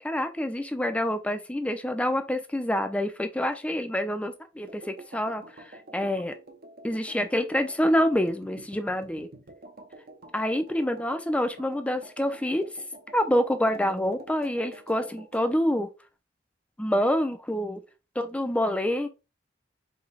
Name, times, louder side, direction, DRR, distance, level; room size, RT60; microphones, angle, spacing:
voice 1, 0.0-6.3 6.8-9.3 10.3-12.7 13.1-15.9 16.8-17.8 18.2-19.1, left 1 dB, 5° left, 0.5 m, -27 dB
sound 1, 4.7-15.5, right 2 dB, 55° right, 0.8 m, -48 dB
4.8 x 2.2 x 4.1 m
head